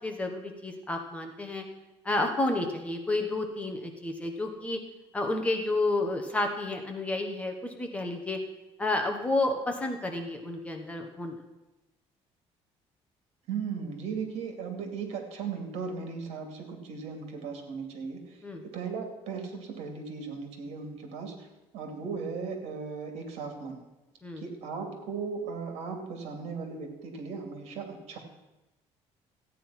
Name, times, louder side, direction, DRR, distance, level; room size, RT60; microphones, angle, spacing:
voice 1, 0.0-1.6 2.0-4.8 5.1-8.4 8.8-11.4 18.4-18.6 24.2-24.4, left 2 dB, 10° left, 3 dB, 1.1 m, -30 dB
voice 2, 13.5-18.4 18.7-21.5 21.7-23.8 24.4-28.2, right 5 dB, 70° right, 4 dB, 2.8 m, -37 dB
14.5 x 9.3 x 5.9 m, 1.0 s
cardioid pair, 175°, 12 cm